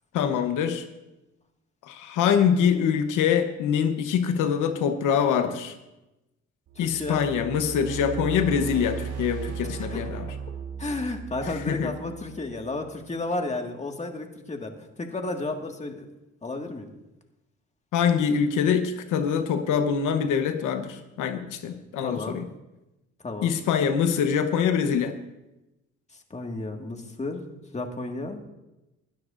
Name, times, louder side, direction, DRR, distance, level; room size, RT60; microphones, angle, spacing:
voice 1, 0.1-0.8 1.8-5.7 6.8-10.3 11.7-11.9 17.9-22.5 23.4-25.2, left 7 dB, 90° left, 7 dB, 1.0 m, -24 dB
sound 1, 6.7-12.9, right 7 dB, 85° right, 2.9 m, -37 dB
voice 2, 6.8-7.2 9.7-10.0 10.8-16.1 16.4-16.9 22.0-22.5 23.2-23.5 26.3-28.5, left 2 dB, 25° left, 3 dB, 1.8 m, -33 dB
20.5 x 12.5 x 2.6 m, 0.97 s
cardioid pair, 90°, 30 cm